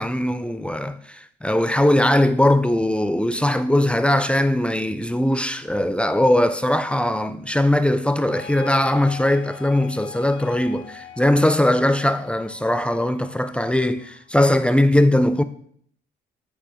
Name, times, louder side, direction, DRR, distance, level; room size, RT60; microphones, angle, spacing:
voice 1, 0.0-15.4, left 1 dB, 5° left, 0.3 m, -20 dB
sound 1, 8.3-14.7, left 7 dB, 75° left, 0.7 m, -42 dB
8.4 x 2.8 x 4.9 m
cardioid pair, 90°, 20 cm